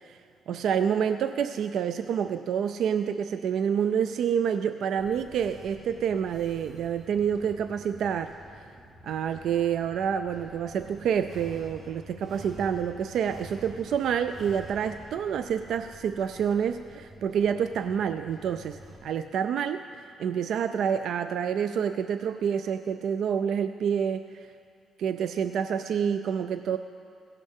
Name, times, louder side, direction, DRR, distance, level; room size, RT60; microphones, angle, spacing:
voice 1, 0.5-8.3 8.6-8.7 9.0-24.5 25.0-26.8, right 8 dB, 65° right, 10 dB, 0.3 m, -28 dB
sound 1, 5.0-19.0, equal, 50° right, 2.5 m, -48 dB
16.5 x 11.5 x 3.6 m, 2.4 s
cardioid pair, 160°, 0 cm